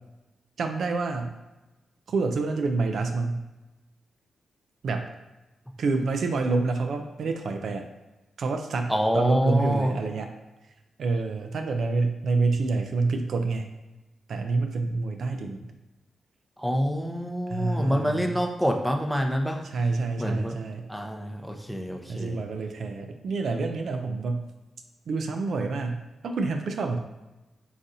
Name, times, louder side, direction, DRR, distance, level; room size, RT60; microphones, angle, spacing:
voice 1, 0.6-1.4 2.1-3.4 4.8-5.1 5.8-7.8 8.4-10.3 11.0-13.7 14.3-15.7 17.5-18.4 19.7-20.9 22.1-24.5 25.1-27.0, right 3 dB, 70° right, 5 dB, 0.3 m, -27 dB
voice 2, 8.9-9.9 16.6-19.6 20.2-20.6 20.9-22.4, equal, ahead, 3 dB, 0.5 m, -26 dB
3.9 x 2.4 x 2.6 m, 1.1 s
cardioid pair, 55°, 0 cm